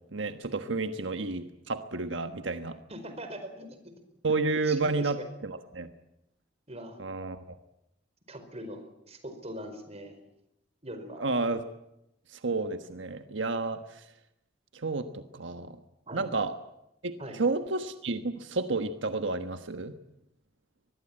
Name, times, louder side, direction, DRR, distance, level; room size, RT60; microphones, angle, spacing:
voice 1, 0.1-2.8 4.2-5.2 5.4-5.9 7.0-7.6 11.2-11.6 12.3-14.0 14.7-15.7 16.1-16.5 17.0-19.9, right 3 dB, 85° right, 8 dB, 1.3 m, -31 dB
voice 2, 2.9-3.7 4.6-5.3 6.7-7.0 8.3-10.2 10.8-11.2 16.1-16.3 17.2-17.4, right 1 dB, 35° right, 8 dB, 4.8 m, -41 dB
24.0 x 21.0 x 8.8 m, 0.86 s
head